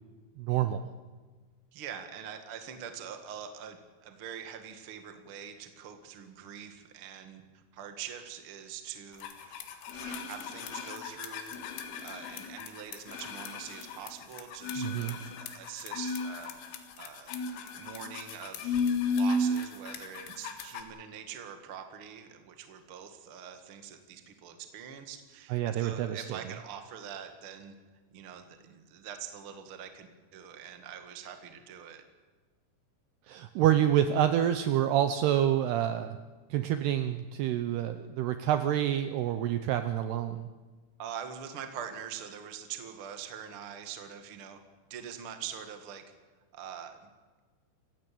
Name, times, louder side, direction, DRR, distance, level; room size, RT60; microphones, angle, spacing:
voice 1, 0.4-0.8 14.8-15.2 25.5-26.4 33.3-36.2 36.5-40.5, right 11 dB, 80° right, 9 dB, 2.4 m, -27 dB
voice 2, 1.7-9.6 9.9-11.6 12.0-17.3 17.7-27.7 28.1-32.0 41.0-44.6 44.9-46.0 46.5-47.1, right 8 dB, 60° right, 6 dB, 1.4 m, -44 dB
sound 1, 9.2-20.8, left 2 dB, 80° left, 4.1 m, -34 dB
27.0 x 15.5 x 8.5 m, 1.4 s
omnidirectional pair, 5.5 m